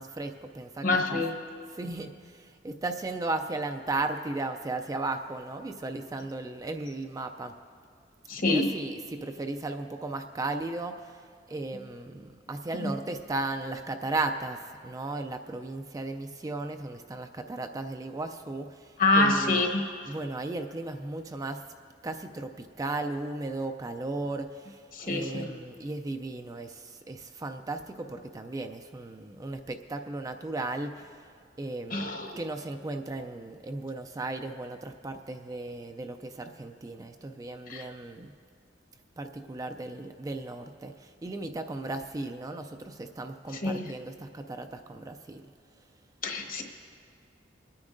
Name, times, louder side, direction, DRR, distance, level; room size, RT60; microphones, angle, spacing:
voice 1, 0.0-1.2 1.7-7.5 8.5-11.2 11.5-19.7 20.1-21.6 22.0-31.2 31.6-38.3 39.2-45.4, right 2 dB, 20° right, 6 dB, 0.3 m, -36 dB
voice 2, 0.8-1.3 8.3-8.7 12.8-12.9 19.0-19.8 24.9-25.5 31.9-32.4 37.7-37.9 43.5-43.9 46.2-46.6, left 2 dB, 50° left, 3 dB, 1.1 m, -26 dB
25.5 x 9.6 x 2.6 m, 2.2 s
head